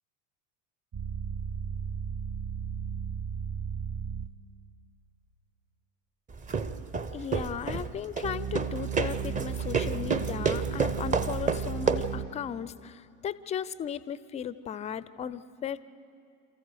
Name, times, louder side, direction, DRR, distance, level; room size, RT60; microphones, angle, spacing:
sound 1, 0.9-4.3 8.2-12.3, right 7 dB, 35° right, 1.2 m, -34 dB
sound 2, 6.3-12.2, right 5 dB, 20° right, 0.7 m, -31 dB
voice 1, 7.1-15.8, left 8 dB, 20° left, 17 dB, 0.4 m, -36 dB
28.0 x 14.5 x 6.5 m, 2.4 s
figure-of-eight pair, 70°, 39 cm